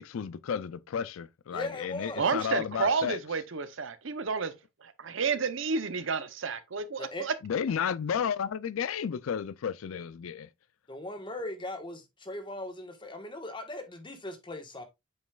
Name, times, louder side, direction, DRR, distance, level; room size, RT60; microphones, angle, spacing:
voice 1, 0.0-3.2 7.4-10.5, left 7 dB, 80° left, 0.4 m, -32 dB
voice 2, 1.5-2.3 7.0-7.3 10.9-14.8, left 2 dB, 25° left, 1.3 m, -39 dB
voice 3, 2.2-4.5 4.8-7.3, right 5 dB, 65° right, 0.8 m, -30 dB
7.9 x 5.3 x 2.3 m
head